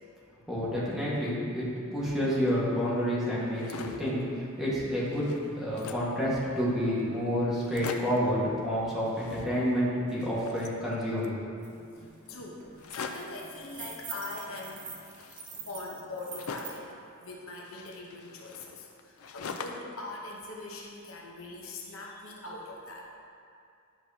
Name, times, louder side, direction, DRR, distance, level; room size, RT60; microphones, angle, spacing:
voice 1, 0.5-1.7 1.9-11.3, equal, ahead, -9 dB, 1.5 m, -29 dB
sound 1, 3.4-4.1 4.6-4.7 4.9-6.2 6.8-6.9 7.1-7.2 7.5-8.3 9.0-9.8 10.1-11.4 12.8-13.4 14.4-16.9 17.6-20.0 20.3-21.2, left 5 dB, 85° left, 0.5 m, -44 dB
voice 2, 11.6-15.0 15.5-16.9 17.2-23.3, left 2 dB, 65° left, -2 dB, 0.9 m, -42 dB
sound 2, 11.6-11.7 12.0-12.3 12.6-16.8, right 7 dB, 35° right, 0.9 m, -44 dB
10.5 x 6.1 x 2.8 m, 2.4 s
head